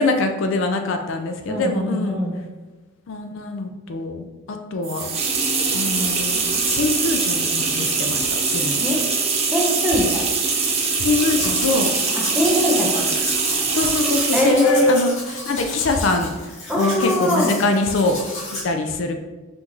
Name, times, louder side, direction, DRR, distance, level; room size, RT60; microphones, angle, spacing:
voice 1, 0.0-2.2 3.1-4.2 4.5-5.1 5.7-8.2 8.5-8.8 10.0-10.1 11.0-11.9 13.7-15.1 15.5-16.3 16.8-18.2 18.6-19.1, left 3 dB, 70° left, 5 dB, 0.4 m, -23 dB
voice 2, 1.5-2.4 8.8-9.0 9.5-10.1 12.3-13.0 14.3-15.0 16.7-17.5, equal, 5° right, -4 dB, 0.8 m, -21 dB
sound 1, 4.8-14.6, right 4 dB, 30° right, 0.5 m, -22 dB
Domestic sounds home sounds, 11.0-18.6, left 1 dB, 35° left, 1.3 m, -32 dB
5.6 x 2.6 x 3.0 m, 1.2 s
head